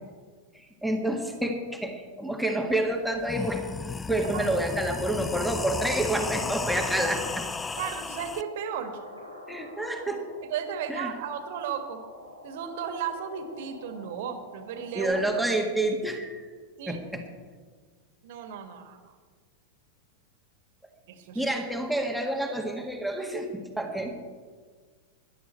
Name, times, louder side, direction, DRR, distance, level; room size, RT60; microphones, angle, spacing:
voice 1, 0.5-3.7 4.1-7.5 9.5-10.4 10.9-11.1 14.9-16.5 16.9-17.2 21.3-24.1, right 1 dB, ahead, 2 dB, 1.8 m, -29 dB
sound 1, 2.7-2.8 3.2-8.4, left 4 dB, 15° left, 0.4 m, -34 dB
voice 2, 7.8-9.0 10.5-12.0 12.4-15.3 16.8-17.0 18.2-19.2 21.1-21.5, right 8 dB, 50° right, 8 dB, 1.7 m, -35 dB
sound 2, 8.1-15.1, left 2 dB, 80° left, 4.0 m, -47 dB
18.0 x 11.5 x 4.4 m, 1.6 s
figure-of-eight pair, 90°, 0 cm